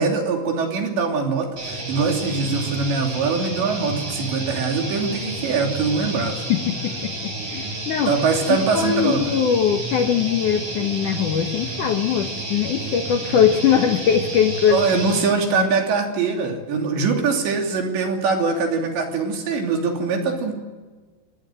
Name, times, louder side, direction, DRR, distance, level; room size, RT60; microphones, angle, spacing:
voice 1, 0.0-6.4 8.1-9.3 14.7-20.5, right 4 dB, 65° right, 3 dB, 5.0 m, -23 dB
sound 1, 1.6-15.3, right 2 dB, 50° right, 8.7 m, -31 dB
voice 2, 6.5-8.1 8.5-15.2 15.5-15.7, left 8 dB, 75° left, 6 dB, 1.8 m, -21 dB
24.5 x 19.0 x 7.8 m, 1.4 s
omnidirectional pair, 5.7 m